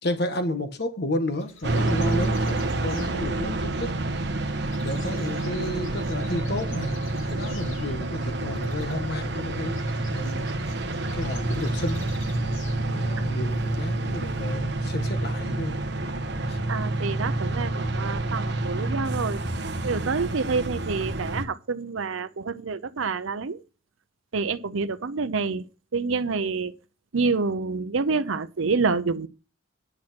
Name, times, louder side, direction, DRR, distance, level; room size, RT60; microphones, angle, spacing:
voice 1, 0.0-3.9 4.8-10.5 11.1-12.0 12.9-15.8 16.5-16.6, left 1 dB, 55° left, 1.5 m, -32 dB
sound 1, 1.4-12.8, left 5 dB, 80° left, 2.5 m, -50 dB
sound 2, 1.6-21.4, right 2 dB, 60° right, 1.2 m, -28 dB
voice 2, 16.7-19.4 19.8-23.6 24.3-25.7 25.9-26.7 27.1-29.3, right 4 dB, 80° right, 0.7 m, -27 dB
11.0 x 5.9 x 6.0 m
head